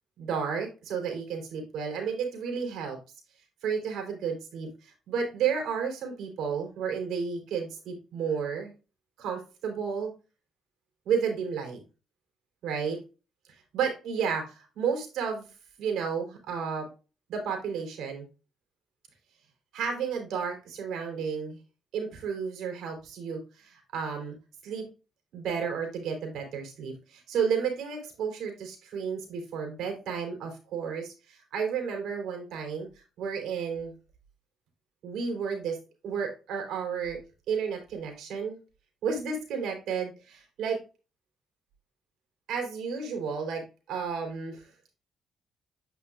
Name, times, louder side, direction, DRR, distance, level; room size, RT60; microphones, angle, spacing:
voice 1, 0.2-3.0 3.6-8.7 9.2-10.1 11.1-11.8 12.6-13.0 13.7-15.5 15.8-16.9 17.3-18.2 19.7-21.6 21.9-24.3 24.6-24.9 25.3-32.9 33.2-33.9 35.0-35.8 36.0-37.2 37.5-38.6 39.0-40.8 42.5-44.7, right 6 dB, 80° right, 3 dB, 3.9 m, -32 dB
9.8 x 5.8 x 2.5 m, 0.31 s
cardioid pair, 90°, 0 cm